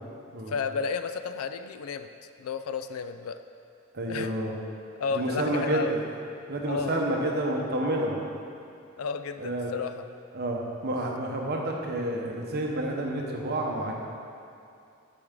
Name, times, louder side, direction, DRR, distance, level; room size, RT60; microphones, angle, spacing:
voice 1, 0.5-2.1 2.4-3.4 4.1-4.3 5.0-5.9 6.6-7.0 9.0-10.1, left 5 dB, 80° left, 10 dB, 0.4 m, -32 dB
voice 2, 3.9-4.5 5.1-6.0 6.5-8.2 9.4-9.7 10.3-13.9, right 1 dB, 50° right, 0 dB, 0.9 m, -29 dB
10.5 x 4.7 x 3.7 m, 2.5 s
head